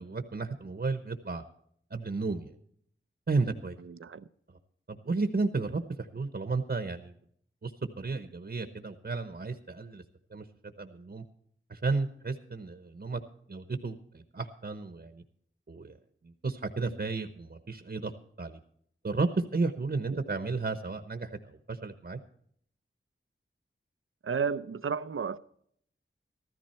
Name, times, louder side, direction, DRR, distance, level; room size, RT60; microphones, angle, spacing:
voice 1, 0.0-1.4 1.9-2.5 3.3-3.8 4.9-7.1 7.6-7.7 8.0-10.0 10.3-10.4 10.8-11.2 11.7-13.2 13.5-15.2 15.7-15.9 16.2-18.1 18.4-18.6 19.0-22.2, right 3 dB, 55° right, 1.0 m, -33 dB
voice 2, 3.8-4.2 20.1-20.2 24.2-25.4, right 6 dB, 80° right, 0.6 m, -32 dB
14.5 x 13.5 x 4.3 m
wide cardioid pair, 75°, 21 cm